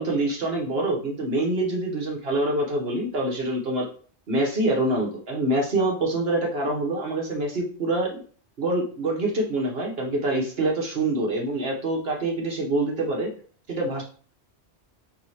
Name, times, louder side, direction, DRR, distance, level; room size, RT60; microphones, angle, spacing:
voice 1, 0.0-3.9 4.3-8.2 8.6-13.3 13.7-14.0, right 2 dB, 65° right, -1 dB, 1.5 m, -25 dB
3.9 x 3.8 x 3.1 m, 0.42 s
omnidirectional pair, 1.1 m